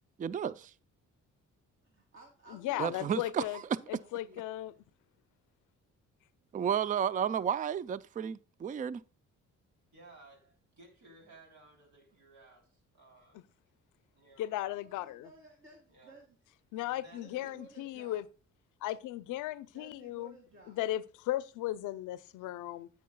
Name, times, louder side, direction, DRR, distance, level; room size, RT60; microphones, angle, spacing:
voice 1, 0.2-0.7 2.8-3.4 6.5-9.0, right 8 dB, 25° right, 0.4 m, -32 dB
voice 2, 1.8-4.8 14.8-16.5 17.2-18.2 19.7-20.8, right 2 dB, 40° right, 2.1 m, -56 dB
voice 3, 2.5-3.6 3.9-4.7 14.4-15.3 16.7-18.2 18.8-20.3 20.7-22.9, left 14 dB, 90° left, 0.6 m, -36 dB
voice 4, 9.9-12.6 13.0-13.4 14.1-14.5 15.9-16.2 16.9-17.6 22.1-22.2, right 2 dB, 65° right, 3.3 m, -57 dB
9.5 x 8.5 x 2.2 m
cardioid pair, 90°, 30 cm